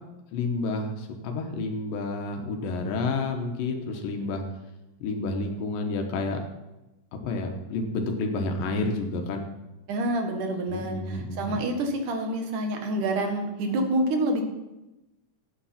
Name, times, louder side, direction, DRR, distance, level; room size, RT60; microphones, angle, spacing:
voice 1, 0.3-4.4 5.0-6.4 7.1-9.5 10.7-11.5, left 3 dB, 85° left, 3 dB, 2.9 m, -30 dB
voice 2, 9.9-14.4, right 1 dB, 70° right, 4 dB, 3.0 m, -27 dB
13.0 x 9.0 x 5.8 m, 0.99 s
omnidirectional pair, 3.8 m